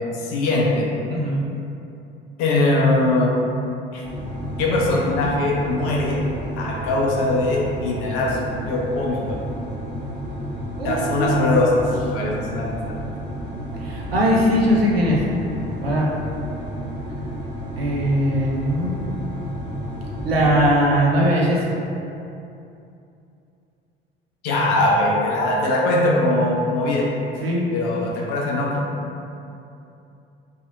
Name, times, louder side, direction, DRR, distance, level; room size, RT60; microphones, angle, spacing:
voice 1, 0.1-1.0 2.4-3.3 3.9-4.0 4.6-6.2 6.6-9.4 10.8-11.8 12.1-13.0 24.4-27.1 27.7-28.9, left 2 dB, 55° left, -3 dB, 0.6 m, -21 dB
voice 2, 1.1-1.4 10.8-11.6 13.8-15.2 15.8-16.1 17.8-18.9 20.2-21.7 27.4-27.6, equal, 85° right, -4 dB, 0.5 m, -20 dB
sound 1, 4.0-20.7, equal, 15° right, 0.7 m, -31 dB
2.7 x 2.4 x 2.4 m, 2.7 s
figure-of-eight pair, 60°, 29 cm